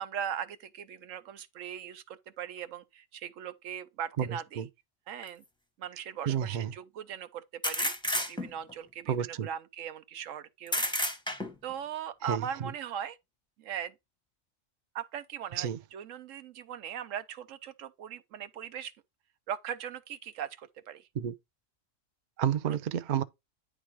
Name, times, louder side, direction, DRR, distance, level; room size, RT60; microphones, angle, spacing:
voice 1, 0.0-4.6 5.1-5.4 5.8-10.8 11.6-13.2 13.6-13.9 14.9-18.9 19.5-21.1 22.7-22.8, right 9 dB, 85° right, 1.1 m, -39 dB
voice 2, 4.2-4.7 6.3-6.7 9.1-9.5 12.2-12.7 15.5-15.8 21.1-21.3 22.4-23.2, right 9 dB, 50° right, 0.6 m, -31 dB
sound 1, 5.2-5.3 7.6-8.7 10.7-11.7, left 1 dB, 5° left, 0.7 m, -31 dB
10.0 x 3.3 x 4.7 m
omnidirectional pair, 1.3 m